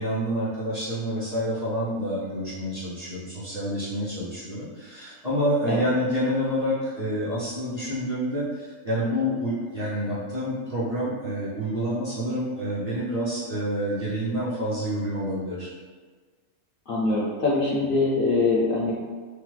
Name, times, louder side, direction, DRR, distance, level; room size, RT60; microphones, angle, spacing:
voice 1, 0.0-15.7, equal, 40° right, -9 dB, 0.6 m, -28 dB
voice 2, 16.9-18.9, left 3 dB, 65° left, -6 dB, 0.5 m, -23 dB
3.0 x 2.0 x 3.1 m, 1.5 s
omnidirectional pair, 1.4 m